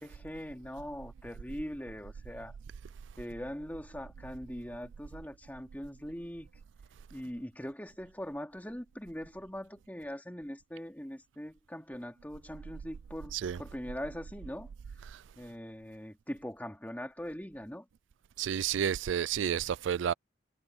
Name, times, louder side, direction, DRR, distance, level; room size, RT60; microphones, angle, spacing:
voice 1, 0.0-2.6 3.2-6.5 7.1-14.7 15.4-17.9, equal, 10° left, 2.6 m, -41 dB
voice 2, 18.4-20.1, right 8 dB, 75° right, 0.3 m, -31 dB
head